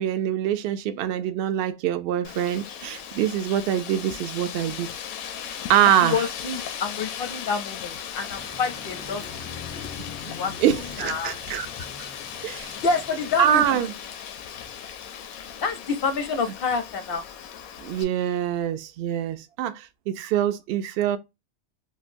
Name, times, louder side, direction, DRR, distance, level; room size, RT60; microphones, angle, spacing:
voice 1, 0.0-4.9 5.7-6.2 10.6-11.7 12.4-12.8 13.4-13.9 17.8-21.2, right 10 dB, 65° right, 0.6 m, -24 dB
Wind, 2.2-18.0, left 8 dB, 90° left, 1.0 m, -37 dB
voice 2, 6.0-9.2 9.6-9.8 10.3-10.6 11.0-11.4 11.8-11.9 12.8-13.6 15.6-17.2, left 4 dB, 60° left, 0.6 m, -28 dB
sound 1, 8.4-13.5, left 4 dB, 15° left, 0.4 m, -43 dB
3.7 x 2.2 x 2.5 m
omnidirectional pair, 1.4 m